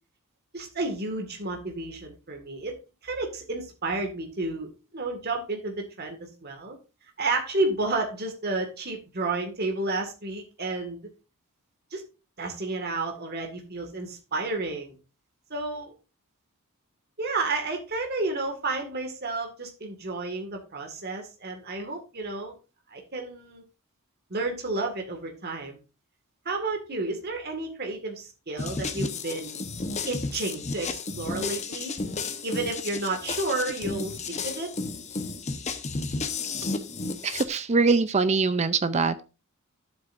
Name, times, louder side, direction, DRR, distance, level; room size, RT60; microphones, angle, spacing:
voice 1, 0.5-2.7 3.0-6.8 7.2-11.1 11.9-12.0 12.4-15.0 15.5-15.9 17.2-22.6 22.9-23.6 24.3-25.8 26.5-29.6 30.1-31.9 32.4-34.7, right 2 dB, 45° right, 1.9 m, -31 dB
sound 1, 28.6-37.5, left 3 dB, 30° left, 1.0 m, -33 dB
voice 2, 37.2-39.2, right 4 dB, 30° right, 0.5 m, -23 dB
12.0 x 7.7 x 2.6 m
head